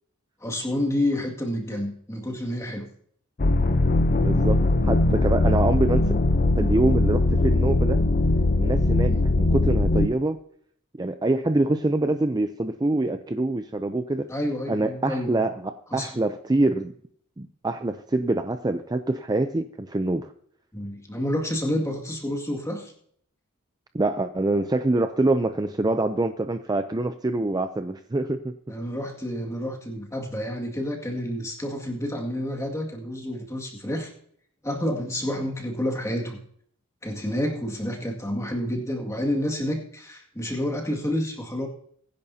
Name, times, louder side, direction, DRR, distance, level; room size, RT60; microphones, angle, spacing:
voice 1, 0.4-2.9 9.0-9.3 14.3-15.4 15.9-16.1 20.7-22.9 28.7-34.1 34.6-36.4 37.0-41.7, left 1 dB, 15° left, 1 dB, 2.0 m, -29 dB
sound 1, 3.4-10.1, left 2 dB, 40° left, 0.7 m, -21 dB
voice 2, 4.1-6.1 6.6-8.0 8.6-10.4 11.0-14.3 14.7-16.9 17.4-20.3 23.9-28.5, right 2 dB, 20° right, 8 dB, 0.5 m, -25 dB
22.0 x 10.5 x 2.8 m, 0.63 s
head